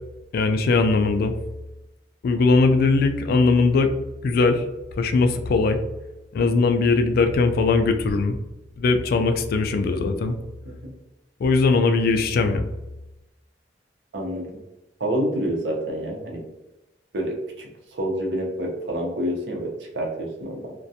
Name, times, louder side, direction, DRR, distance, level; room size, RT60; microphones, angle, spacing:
voice 1, 0.3-1.3 2.2-3.9 4.2-4.6 5.0-5.8 6.3-8.4 8.8-10.3 11.4-12.7, left 3 dB, 60° left, 7 dB, 0.3 m, -20 dB
voice 2, 14.1-14.5 15.0-16.4 17.1-20.7, right 1 dB, 80° right, 0 dB, 0.7 m, -28 dB
2.4 x 2.2 x 2.7 m, 0.98 s
head